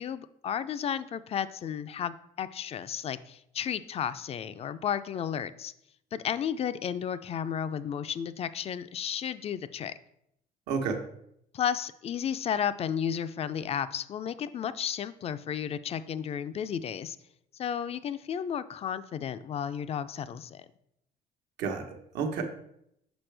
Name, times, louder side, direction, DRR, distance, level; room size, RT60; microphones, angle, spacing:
voice 1, 0.0-5.7 6.1-9.9 11.5-17.2 17.6-20.7, left 8 dB, 35° left, 14 dB, 0.4 m, -33 dB
voice 2, 10.7-11.0 21.6-22.4, right 5 dB, 85° right, 3 dB, 1.0 m, -31 dB
6.1 x 5.6 x 3.3 m, 0.75 s
cardioid pair, 110°, 17 cm